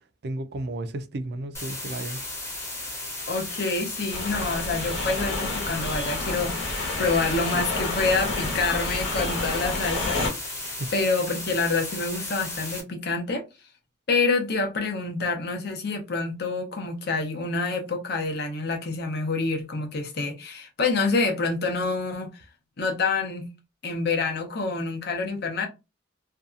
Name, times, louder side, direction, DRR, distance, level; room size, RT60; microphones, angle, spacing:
voice 1, 0.2-2.5 10.6-10.9, right 1 dB, 55° right, 0.4 m, -33 dB
sound 1, 1.5-12.8, left 2 dB, 15° left, 0.8 m, -35 dB
voice 2, 3.3-13.4 14.1-22.4 22.8-23.4 23.8-25.7, left 3 dB, 55° left, 0.7 m, -27 dB
sound 2, 4.1-10.3, left 3 dB, 70° left, 1.1 m, -29 dB
2.6 x 2.3 x 2.4 m
head